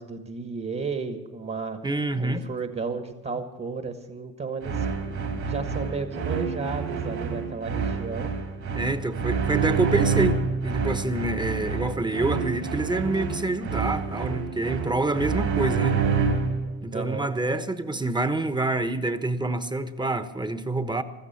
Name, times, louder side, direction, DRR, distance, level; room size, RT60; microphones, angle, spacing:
voice 1, 0.0-1.8 2.2-4.9 5.4-8.3 16.9-17.3, right 4 dB, 35° right, 1.5 m, -33 dB
voice 2, 1.8-2.4 8.7-16.0 16.8-21.0, right 2 dB, 15° right, 1.1 m, -27 dB
sound 1, 4.6-16.7, right 5 dB, 65° right, 3.5 m, -27 dB
16.0 x 13.5 x 5.8 m
cardioid pair, 90°, 30 cm